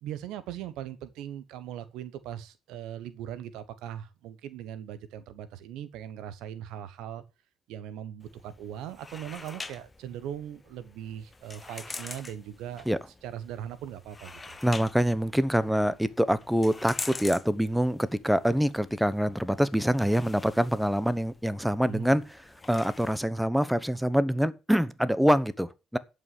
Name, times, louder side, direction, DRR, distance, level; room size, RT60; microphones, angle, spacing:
voice 1, 0.0-7.2 7.7-12.9 13.2-14.6 21.8-22.2, right 10 dB, 80° right, 1.1 m, -40 dB
sound 1, 8.2-23.2, left 3 dB, 25° left, 1.2 m, -45 dB
voice 2, 14.6-22.2 22.7-26.0, equal, ahead, 1.1 m, -25 dB
11.0 x 5.6 x 8.3 m
supercardioid pair, 60°, 0 cm